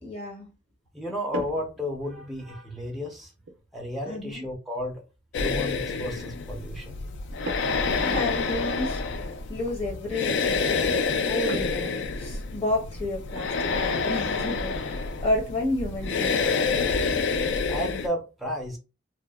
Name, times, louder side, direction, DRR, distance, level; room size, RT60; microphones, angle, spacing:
voice 1, 0.0-0.5 4.1-4.4 8.0-9.0 9.5-16.5, left 1 dB, 30° left, 0.8 m, -31 dB
voice 2, 0.9-3.3 3.7-5.0 5.4-7.0 17.7-18.8, left 1 dB, ahead, 0.4 m, -33 dB
sound 1, 1.3-2.5 3.4-3.7 7.4-8.0 8.2-8.3 8.9-9.1 11.5-12.4 13.8-13.9 14.4-14.5 14.9-15.1 15.5-15.6 16.0-16.8, right 2 dB, 65° right, 0.4 m, -38 dB
sound 2, 5.3-18.1, left 4 dB, 70° left, 0.3 m, -28 dB
2.6 x 2.1 x 2.2 m
head